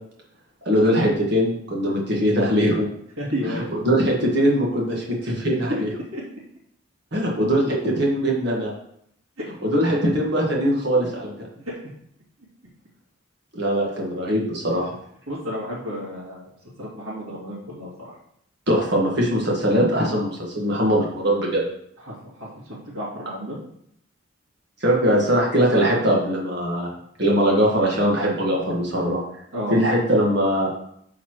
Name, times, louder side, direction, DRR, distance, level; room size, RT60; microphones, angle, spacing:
voice 1, 0.7-2.9 3.5-5.9 7.1-8.7 9.6-11.3 13.5-14.9 18.7-21.6 24.8-26.9 27.2-29.2 29.7-30.7, equal, 55° right, -3 dB, 1.6 m, -21 dB
voice 2, 3.2-3.6 5.5-5.8 6.1-6.2 9.9-10.0 11.7-11.8 15.3-16.5 16.8-17.9 22.1-22.3 22.9-23.6 29.5-29.8, equal, 75° right, -9 dB, 2.4 m, -31 dB
12.0 x 4.2 x 3.1 m, 0.70 s
head